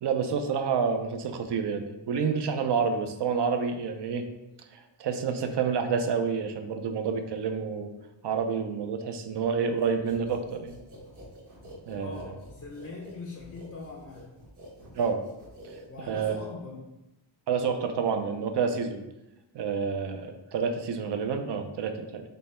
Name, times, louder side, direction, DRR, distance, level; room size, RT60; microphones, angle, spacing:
voice 1, 0.0-4.2 4.7-7.9 8.2-10.8 11.9-12.2 15.0-15.2 16.1-16.3 17.5-19.0 19.5-22.2, right 6 dB, 60° right, 6 dB, 0.5 m, -28 dB
sound 1, 9.8-16.3, equal, 40° right, 1.2 m, -48 dB
voice 2, 11.6-14.4 15.9-17.0, left 3 dB, 35° left, -1 dB, 0.4 m, -42 dB
5.3 x 2.1 x 4.2 m, 0.96 s
wide cardioid pair, 170°, 48 cm